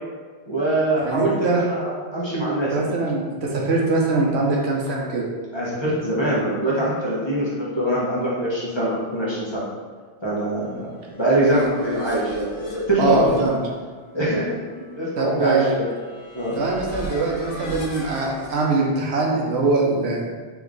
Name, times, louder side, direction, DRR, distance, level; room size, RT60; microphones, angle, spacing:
voice 1, 0.5-2.7 5.5-9.6 10.2-13.4 14.1-14.6 15.0-15.9 16.3-16.6, right 1 dB, 25° left, -7 dB, 0.9 m, -23 dB
voice 2, 1.0-1.6 2.7-5.3 13.0-13.6 15.2-15.7 16.6-20.2, right 3 dB, 75° right, -2 dB, 1.0 m, -22 dB
sound 1, 11.1-18.6, equal, 75° left, 1.1 m, -37 dB
3.5 x 3.0 x 3.7 m, 1.5 s
omnidirectional pair, 1.1 m